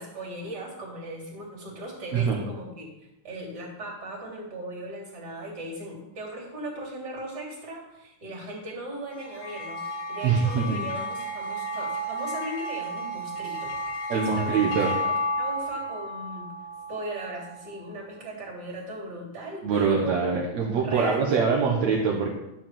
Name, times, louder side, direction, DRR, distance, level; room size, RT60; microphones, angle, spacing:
voice 1, 0.0-2.9 3.2-9.8 10.1-13.8 14.1-16.5 16.9-20.1 20.8-21.8, right 1 dB, 35° right, -3 dB, 3.7 m, -38 dB
voice 2, 2.1-2.4 10.2-10.9 14.1-14.9 19.6-22.3, right 5 dB, 65° right, -2 dB, 2.3 m, -24 dB
sound 1, 9.1-17.8, equal, 85° left, 3.4 m, -32 dB
12.0 x 4.9 x 7.5 m, 0.93 s
omnidirectional pair, 3.4 m